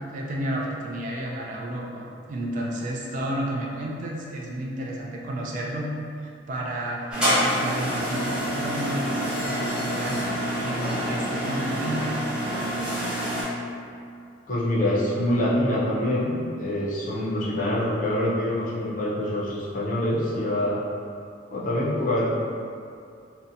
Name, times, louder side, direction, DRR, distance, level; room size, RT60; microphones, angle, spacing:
voice 1, 0.1-10.3 10.6-12.1, right 1 dB, 45° right, -3 dB, 0.3 m, -32 dB
sound 1, 7.1-13.4, equal, 5° right, 0.6 m, -27 dB
voice 2, 14.5-20.8 21.5-22.3, left 1 dB, 45° left, -6 dB, 0.5 m, -25 dB
2.7 x 2.1 x 2.5 m, 2.4 s
head